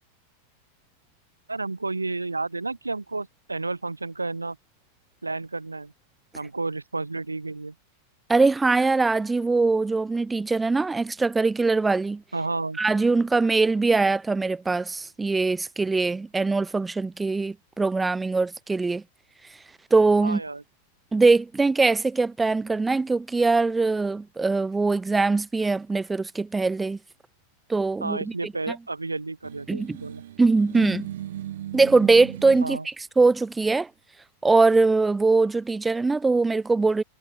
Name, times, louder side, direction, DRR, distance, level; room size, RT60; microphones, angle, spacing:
voice 1, 1.5-4.6 5.2-5.9 6.3-7.7 12.3-12.8 20.2-20.6 28.0-30.2 32.6-32.9, right 3 dB, 80° right, 0.8 m, -31 dB
voice 2, 8.3-12.2 12.8-19.0 19.9-20.4 21.1-27.0 27.7-28.5 29.7-30.0 30.4-31.1 31.7-33.9 34.4-37.0, right 3 dB, 10° right, 0.4 m, -22 dB
sound 1, 29.4-32.7, right 12 dB, 60° right, 2.0 m, -37 dB
figure-of-eight pair, 90°, 0 cm